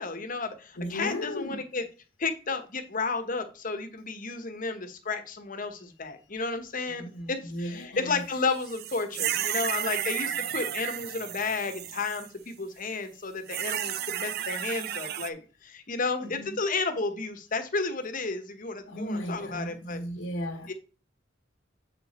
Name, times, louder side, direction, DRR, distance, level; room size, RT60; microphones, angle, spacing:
voice 1, 0.0-1.8 2.2-7.0 7.3-20.0 20.7-20.8, left 4 dB, 45° left, 1.1 m, -32 dB
voice 2, 0.8-1.6 7.0-8.3 16.2-16.6 18.9-20.7, equal, 90° left, 1.4 m, -35 dB
sound 1, 8.6-12.3 13.5-15.3, right 11 dB, 55° right, 0.5 m, -32 dB
7.6 x 5.0 x 4.3 m
head